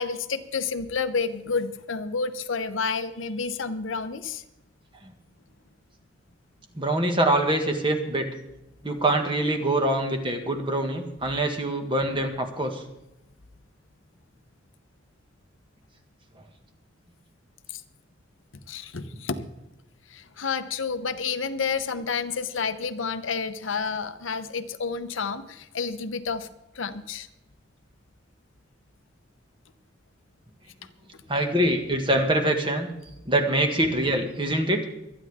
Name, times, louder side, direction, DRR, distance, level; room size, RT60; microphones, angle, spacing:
voice 1, 0.0-4.4 17.7-17.8 18.7-19.5 20.1-26.5 26.7-27.3 31.1-31.2, left 5 dB, 75° left, 10 dB, 0.9 m, -30 dB
voice 2, 6.8-8.3 8.8-12.8 31.3-32.9 33.3-34.8, right 1 dB, 25° right, 4 dB, 1.8 m, -24 dB
25.0 x 9.8 x 3.6 m, 0.91 s
head